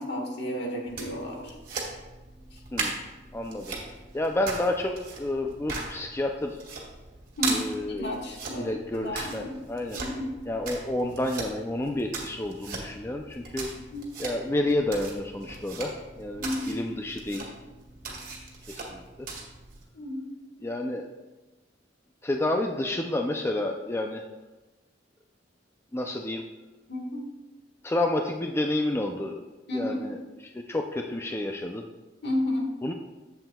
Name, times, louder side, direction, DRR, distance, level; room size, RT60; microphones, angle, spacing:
voice 1, 0.0-1.6 2.5-2.6 7.4-7.6 8.0-9.6 9.9-10.3 13.9-14.1 16.4-16.8 19.9-20.3 26.9-27.3 29.7-30.0 32.2-32.7, left 1 dB, 65° left, 1 dB, 1.6 m, -32 dB
sound 1, 0.9-19.8, right 3 dB, 50° right, 2.0 m, -39 dB
voice 2, 3.3-3.8 4.1-6.6 7.4-8.1 8.6-10.0 10.5-13.7 14.2-17.5 18.7-19.3 20.6-21.1 22.2-24.2 25.9-26.5 27.8-29.4 29.7-30.2 30.5-31.8 32.8-32.9, left 1 dB, 15° left, 3 dB, 0.4 m, -30 dB
11.5 x 7.8 x 2.3 m, 1.1 s
head